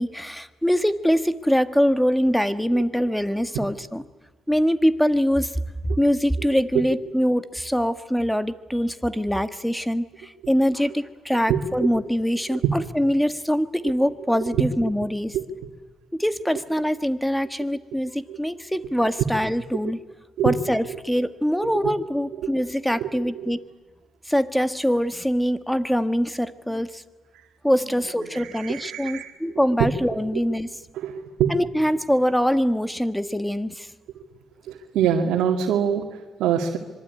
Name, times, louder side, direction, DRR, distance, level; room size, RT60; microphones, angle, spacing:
voice 1, 0.0-4.0 4.5-15.4 16.1-20.0 20.4-23.6 24.3-27.0 27.6-30.7 31.5-33.9, equal, ahead, 11 dB, 1.6 m, -23 dB
voice 2, 28.3-29.3 29.8-29.9 30.9-31.5 34.7-36.8, right 9 dB, 85° right, 1 dB, 2.3 m, -24 dB
25.5 x 23.5 x 9.5 m, 1.3 s
cardioid pair, 90°, 0 cm